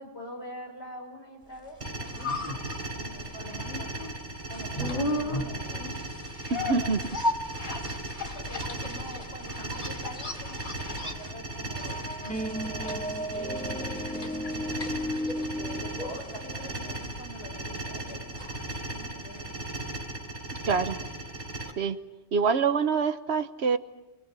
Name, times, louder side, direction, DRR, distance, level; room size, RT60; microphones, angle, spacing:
voice 1, 0.0-4.0 4.5-5.9 8.2-12.1 13.2-14.8 15.3-19.5, equal, 70° left, 0 dB, 6.5 m, -45 dB
sound 1, 1.7-19.7 20.0-20.1, left 1 dB, 45° left, 2.6 m, -36 dB
sound 2, 1.8-21.7, right 1 dB, 40° right, 3.9 m, -37 dB
voice 2, 6.5-7.0 20.7-21.0 21.8-22.0 22.3-23.8, right 5 dB, 70° right, 11 dB, 1.3 m, -25 dB
sound 3, 11.8-17.0, equal, 5° left, 0.8 m, -35 dB
28.0 x 20.5 x 7.6 m, 1.0 s
omnidirectional pair, 1.2 m